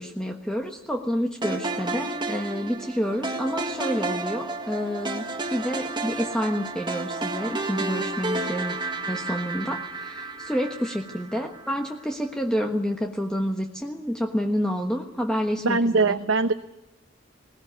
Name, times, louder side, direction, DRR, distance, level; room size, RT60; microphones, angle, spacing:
voice 1, 0.0-5.2 5.5-8.8 9.1-16.2, equal, 5° left, 2 dB, 1.3 m, -28 dB
sound 1, 1.4-11.7, right 2 dB, 25° right, 1.7 m, -31 dB
voice 2, 15.6-16.5, right 3 dB, 85° right, 8 dB, 0.9 m, -21 dB
21.0 x 19.0 x 9.6 m, 0.92 s
head